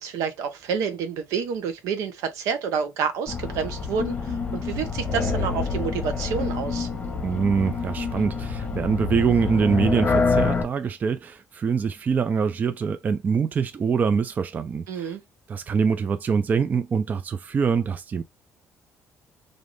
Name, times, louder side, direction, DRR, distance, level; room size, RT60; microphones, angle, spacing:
voice 1, 0.0-6.9 14.9-15.2, right 6 dB, 85° right, 0.8 m, -29 dB
sound 1, 3.3-10.6, left 4 dB, 30° left, 0.8 m, -27 dB
voice 2, 7.2-15.2 15.5-18.2, right 6 dB, 30° right, 0.4 m, -24 dB
2.6 x 2.4 x 3.2 m
cardioid pair, 115°, 5 cm